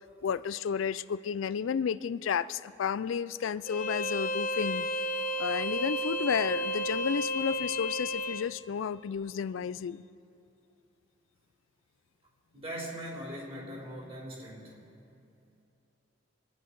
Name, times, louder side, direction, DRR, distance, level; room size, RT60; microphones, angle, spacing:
voice 1, 0.2-4.9 5.4-10.0, left 7 dB, 75° left, 16 dB, 0.4 m, -32 dB
Bowed string instrument, 3.6-8.5, equal, 45° left, 0.9 m, -32 dB
voice 2, 12.5-14.8, equal, 30° right, -3 dB, 3.7 m, -40 dB
26.5 x 10.0 x 4.6 m, 2.7 s
head